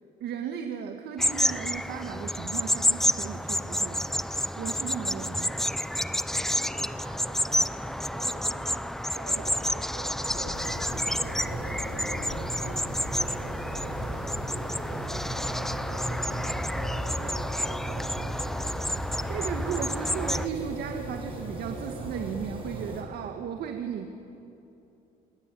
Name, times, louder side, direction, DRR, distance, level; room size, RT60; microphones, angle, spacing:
voice 1, 0.2-4.1 4.6-5.6 9.4-9.5 19.3-24.1, right 8 dB, 70° right, 5 dB, 1.9 m, -35 dB
sound 1, 1.2-20.5, equal, ahead, 0.7 m, -30 dB
voice 2, 6.3-19.4, right 4 dB, 85° right, 2 dB, 7.6 m, -47 dB
sound 2, 10.3-21.8, left 4 dB, 55° left, 2.9 m, -46 dB
sound 3, 10.5-23.0, right 2 dB, 30° right, 6.6 m, -38 dB
29.0 x 21.5 x 8.6 m, 2.8 s
cardioid pair, 110°, 17 cm